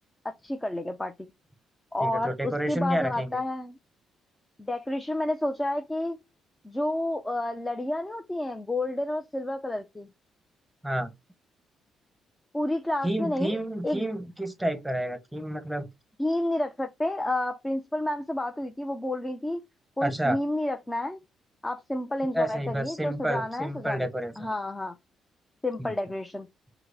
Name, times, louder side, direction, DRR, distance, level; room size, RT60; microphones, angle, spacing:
voice 1, 0.2-1.3 1.9-3.8 4.6-6.2 6.6-10.1 12.5-13.6 13.8-14.1 16.2-19.6 20.0-21.2 21.6-24.1 24.4-24.9 25.6-26.5, left 1 dB, 15° left, 0.5 m, -30 dB
voice 2, 2.0-3.4 10.8-11.1 13.0-15.9 20.0-20.4 22.3-24.5 25.8-25.9, right 1 dB, 5° right, 1.0 m, -30 dB
4.7 x 2.1 x 4.7 m
cardioid pair, 90°, 0 cm